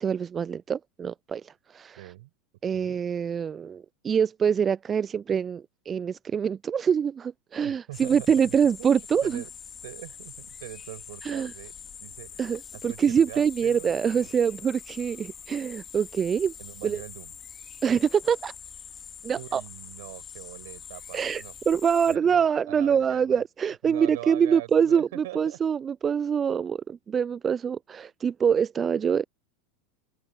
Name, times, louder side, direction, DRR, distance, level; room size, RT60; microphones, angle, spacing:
voice 1, 0.0-2.0 2.6-9.4 11.2-11.5 12.4-16.5 16.8-17.0 17.8-18.5 19.2-19.6 21.1-29.2, right 7 dB, 25° right, 0.5 m, -25 dB
voice 2, 2.0-2.3 2.7-2.9 7.6-8.5 8.8-9.5 9.8-11.7 12.0-14.3 16.6-17.3 19.3-21.5 22.1-23.4 23.8-25.6, right 18 dB, 60° right, 7.6 m, -43 dB
sound 1, 7.9-22.2, left 7 dB, 25° left, 3.1 m, -44 dB
open air
figure-of-eight pair, 85°, 0 cm